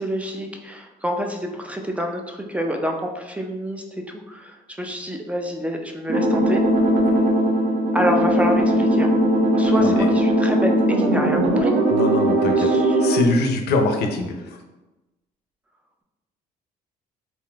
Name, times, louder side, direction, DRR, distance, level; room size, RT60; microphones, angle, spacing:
voice 1, 0.0-3.8 4.3-6.6 7.9-9.1 9.5-11.7 12.6-13.0, equal, 10° right, 3 dB, 0.3 m, -27 dB
sound 1, 6.1-13.2, right 1 dB, 50° right, 0.7 m, -19 dB
voice 2, 11.9-14.6, left 3 dB, 75° left, 4 dB, 0.5 m, -23 dB
3.5 x 2.5 x 2.3 m, 1.1 s
cardioid pair, 110°, 17 cm